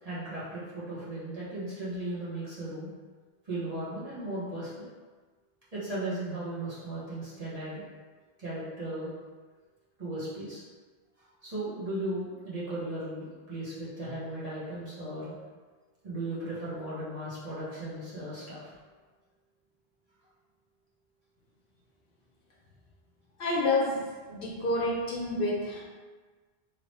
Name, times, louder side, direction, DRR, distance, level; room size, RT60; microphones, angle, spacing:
voice 1, 0.0-2.9 3.4-4.9 5.7-7.8 8.4-9.1 10.0-10.6 11.4-15.3 16.0-18.7, right 1 dB, 40° right, -10 dB, 1.1 m, -36 dB
voice 2, 23.4-25.8, left 2 dB, 65° left, -4 dB, 0.8 m, -29 dB
3.0 x 2.8 x 3.1 m, 1.4 s
omnidirectional pair, 1.1 m